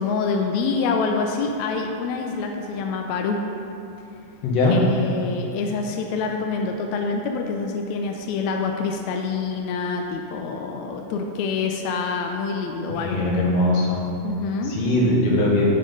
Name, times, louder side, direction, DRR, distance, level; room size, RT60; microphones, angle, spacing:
voice 1, 0.0-3.5 4.7-13.2 14.2-14.8, left 4 dB, 85° left, 3 dB, 1.6 m, -26 dB
voice 2, 4.4-4.8 13.0-14.0 14.6-15.7, left 2 dB, 60° left, -3 dB, 2.1 m, -20 dB
7.7 x 4.8 x 5.3 m, 3.0 s
omnidirectional pair, 3.8 m